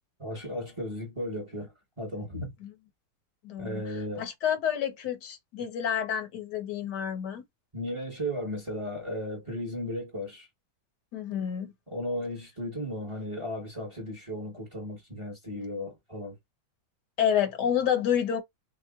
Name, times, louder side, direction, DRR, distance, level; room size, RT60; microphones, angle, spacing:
voice 1, 0.2-2.5 3.6-4.2 7.7-10.5 11.9-16.4, equal, 20° right, 1.0 m, -35 dB
voice 2, 3.4-3.8 4.2-7.4 11.1-11.7 17.2-18.4, left 9 dB, 85° left, 1.6 m, -29 dB
5.8 x 2.2 x 2.4 m
omnidirectional pair, 1.8 m